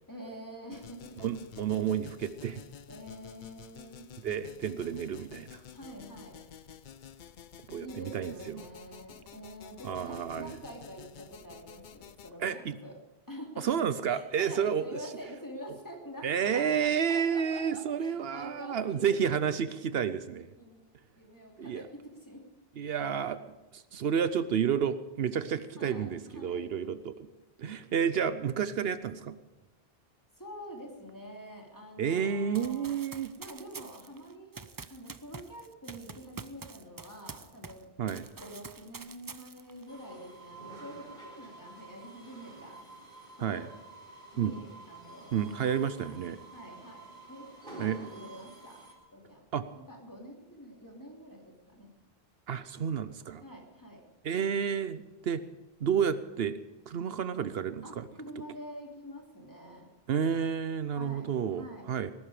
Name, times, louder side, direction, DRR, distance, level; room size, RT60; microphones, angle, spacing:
voice 1, 0.1-1.2 2.9-4.1 5.7-6.4 7.8-12.9 13.3-13.6 14.1-19.4 20.6-21.9 22.2-22.4 25.8-26.6 30.4-33.0 33.4-37.9 38.3-42.8 43.3-43.7 44.3-45.9 46.5-48.8 49.1-49.5 49.9-51.9 53.4-54.0 57.8-59.9 60.9-61.9, equal, 20° left, 0 dB, 2.8 m, -46 dB
sound 1, 0.7-12.3, left 8 dB, 55° left, 0.7 m, -51 dB
voice 2, 1.2-2.6 4.2-5.6 7.7-8.6 9.8-10.6 12.4-12.8 13.6-14.8 16.2-20.5 21.6-21.8 22.8-23.4 23.7-27.3 27.6-29.4 32.0-33.3 38.0-38.2 43.4-43.7 44.4-44.5 45.3-46.4 47.8-48.0 49.5-49.6 52.5-53.4 54.2-55.4 55.8-56.6 56.9-58.1 60.1-62.1, right 7 dB, 75° right, 13 dB, 0.9 m, -30 dB
Run, 32.5-37.8 38.1-39.8, right 4 dB, 30° right, 0.4 m, -46 dB
sound 2, 39.9-48.9, right 2 dB, 55° right, 4.1 m, -50 dB
20.0 x 12.0 x 4.9 m, 1.0 s
omnidirectional pair, 1.0 m